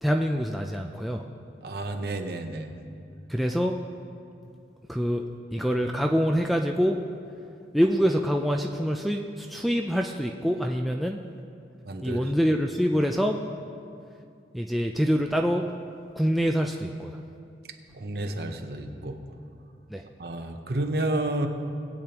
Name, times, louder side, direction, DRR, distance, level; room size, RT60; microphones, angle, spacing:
voice 1, 0.0-1.2 3.3-3.8 4.9-5.2 5.5-7.0 7.7-11.2 12.0-13.4 14.5-15.6 16.2-17.2 19.9-20.0, equal, ahead, 1 dB, 0.3 m, -25 dB
voice 2, 1.6-2.7 11.9-12.2 17.9-19.2 20.2-21.5, right 1 dB, 60° right, 5 dB, 0.8 m, -30 dB
19.5 x 8.5 x 2.9 m, 2.4 s
head